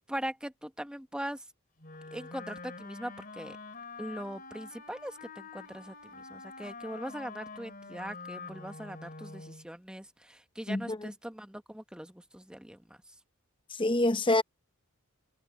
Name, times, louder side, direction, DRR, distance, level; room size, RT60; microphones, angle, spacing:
voice 1, 0.1-1.4 2.1-3.6 4.0-13.0, equal, 5° right, 1.0 m, -41 dB
Wind instrument woodwind instrument, 1.8-9.7, left 3 dB, 40° left, 3.4 m, -46 dB
voice 2, 10.7-11.1 13.7-14.4, left 2 dB, 25° left, 0.8 m, -27 dB
head